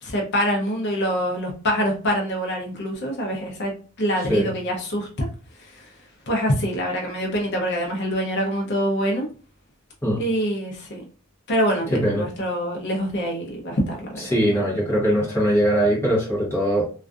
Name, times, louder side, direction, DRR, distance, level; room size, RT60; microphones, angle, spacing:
voice 1, 0.0-5.3 5.6-5.9 6.3-9.3 10.2-11.0 11.5-14.2, equal, 50° left, 0 dB, 0.5 m, -25 dB
voice 2, 11.9-12.3 14.2-16.9, equal, 10° left, -5 dB, 0.8 m, -21 dB
2.4 x 2.3 x 2.3 m, 0.38 s
head